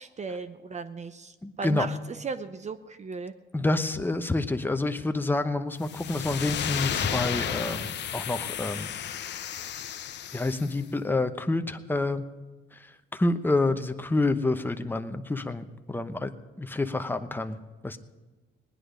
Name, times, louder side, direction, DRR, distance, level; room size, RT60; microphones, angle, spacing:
voice 1, 0.0-3.3, right 5 dB, 35° right, 11 dB, 0.7 m, -36 dB
voice 2, 1.4-1.9 3.5-8.9 10.3-12.2 12.7-16.3 16.6-17.6 17.8-18.0, left 2 dB, 10° left, 8 dB, 0.9 m, -28 dB
sound 1, 5.8-10.8, left 9 dB, 65° left, 0.9 m, -33 dB
19.5 x 10.0 x 5.1 m, 1.2 s
cardioid pair, 90°, 20 cm